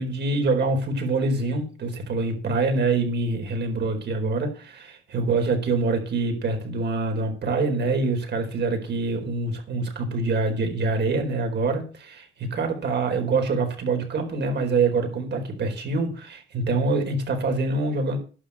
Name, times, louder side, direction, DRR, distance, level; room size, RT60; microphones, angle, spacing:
voice 1, 0.0-18.2, right 3 dB, 60° right, 4.5 m, -25 dB
11.0 x 6.4 x 8.7 m
cardioid pair, 90°, 20 cm